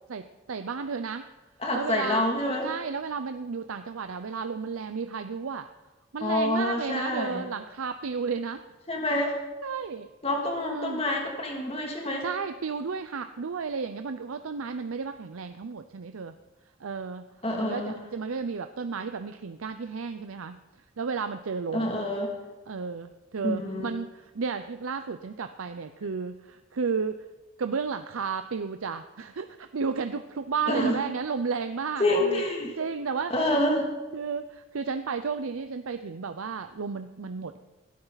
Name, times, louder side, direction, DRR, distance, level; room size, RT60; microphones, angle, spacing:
voice 1, 0.1-1.3 1.7-5.7 6.1-8.6 9.6-10.1 10.7-11.1 12.2-16.3 16.8-17.3 17.6-20.6 21.0-22.0 22.7-27.2 27.6-32.4 32.8-33.6 34.1-37.6, right 5 dB, 85° right, 9 dB, 0.6 m, -33 dB
voice 2, 1.6-2.7 6.2-7.4 8.9-9.4 10.2-12.2 17.4-17.9 21.7-22.3 23.4-23.9 30.7-31.0 32.0-32.7 33.3-33.9, left 1 dB, 30° left, 0 dB, 2.4 m, -27 dB
20.5 x 12.0 x 4.0 m, 1.2 s
head